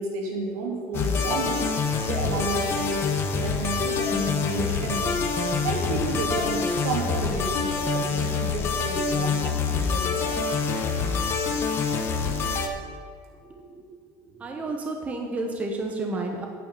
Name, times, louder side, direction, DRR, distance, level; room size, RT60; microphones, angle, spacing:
voice 1, 0.0-1.6 2.1-5.2 5.6-10.6, right 3 dB, 80° right, -1 dB, 2.8 m, -31 dB
sound 1, 0.9-12.7, left 5 dB, 30° left, 1.0 m, -26 dB
voice 2, 13.4-13.8 14.3-16.5, right 2 dB, 15° right, 2 dB, 0.9 m, -31 dB
9.1 x 6.3 x 8.6 m, 2.1 s
cardioid pair, 170°, 8 cm